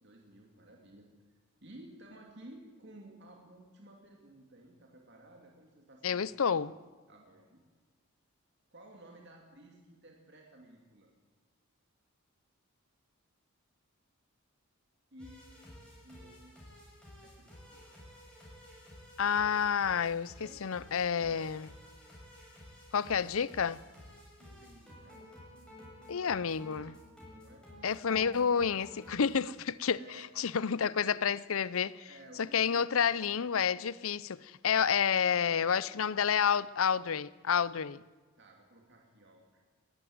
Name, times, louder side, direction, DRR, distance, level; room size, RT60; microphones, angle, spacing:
voice 1, 0.0-6.4 7.1-7.6 8.7-11.1 15.1-15.5 15.9-16.6 17.2-18.1 20.4-20.7 21.2-21.5 24.4-25.4 27.2-27.6 30.0-30.3 30.8-31.2 32.1-33.4 38.4-39.8, right 1 dB, 55° right, 2.8 m, -55 dB
voice 2, 6.0-6.7 19.2-21.7 22.9-23.8 26.1-27.0 27.8-30.0 30.4-32.1 32.4-38.0, left 7 dB, 75° left, 0.6 m, -29 dB
sound 1, 15.2-29.3, left 1 dB, 5° left, 6.7 m, -53 dB
20.0 x 14.0 x 9.5 m
head